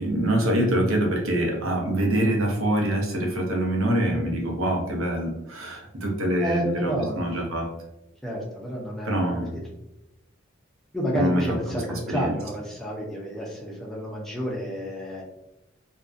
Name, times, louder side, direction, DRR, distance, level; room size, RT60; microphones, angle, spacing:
voice 1, 0.0-7.7 9.0-9.5 11.1-12.3, right 1 dB, 85° right, 0 dB, 0.7 m, -25 dB
voice 2, 6.4-7.3 8.2-9.5 10.9-15.2, equal, ahead, -3 dB, 0.4 m, -30 dB
2.5 x 2.1 x 2.4 m, 0.89 s
head